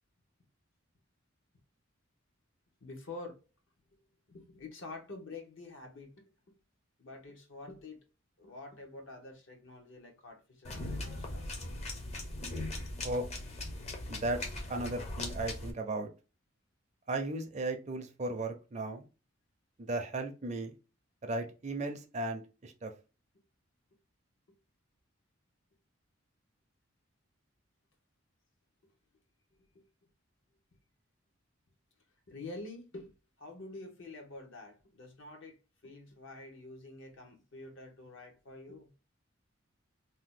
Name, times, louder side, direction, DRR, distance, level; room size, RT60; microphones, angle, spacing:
voice 1, 2.8-3.4 4.3-6.3 7.0-8.0 8.4-11.4 29.6-29.8 32.3-35.6 35.8-38.9, left 2 dB, 70° left, 0.9 m, -47 dB
sound 1, 10.6-15.7, left 2 dB, 30° left, 0.6 m, -39 dB
voice 2, 14.1-16.1 17.1-19.0 19.8-20.7 21.2-22.9, right 2 dB, 35° right, 0.4 m, -36 dB
2.8 x 2.0 x 3.6 m
head